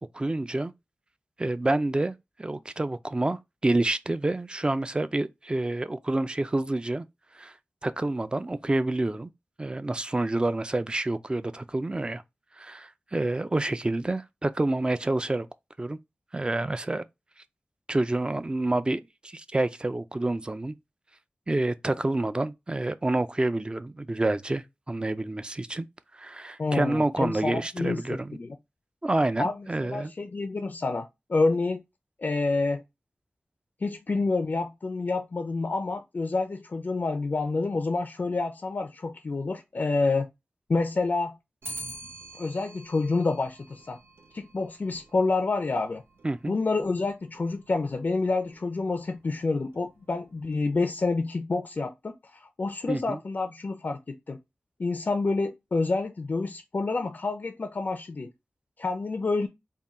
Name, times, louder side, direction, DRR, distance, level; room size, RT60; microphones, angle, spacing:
voice 1, 0.1-0.7 1.4-7.1 7.3-7.6 7.8-9.3 9.6-12.2 12.6-15.5 15.8-16.0 16.3-17.0 17.9-20.7 21.5-25.8 26.1-28.4 29.0-30.1 46.2-46.5 52.9-53.2, right 2 dB, 25° right, 0.3 m, -28 dB
voice 2, 26.6-28.6 29.4-31.8 32.2-32.8 33.8-40.3 40.7-41.4 42.3-44.0 44.3-46.0 46.5-54.4 54.8-58.3 58.8-59.5, left 3 dB, 50° left, 0.4 m, -28 dB
Clock, 41.6-51.0, right 1 dB, 75° right, 0.7 m, -48 dB
3.6 x 2.2 x 4.1 m
wide cardioid pair, 95°, 4 cm